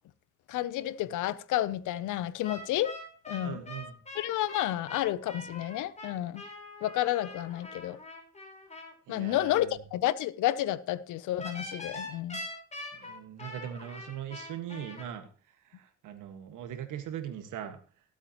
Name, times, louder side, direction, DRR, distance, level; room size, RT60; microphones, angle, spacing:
voice 1, 0.5-2.9 3.3-3.6 4.1-6.4 6.8-8.0 9.1-12.4, left 13 dB, 85° left, 0.7 m, -30 dB
sound 1, 2.4-8.9 11.4-15.0, left 2 dB, 25° left, 4.5 m, -43 dB
voice 2, 3.4-4.0 9.1-9.7 13.0-15.3 15.7-17.8, right 10 dB, 85° right, 1.7 m, -40 dB
17.5 x 8.3 x 3.0 m
cardioid pair, 90°, 30 cm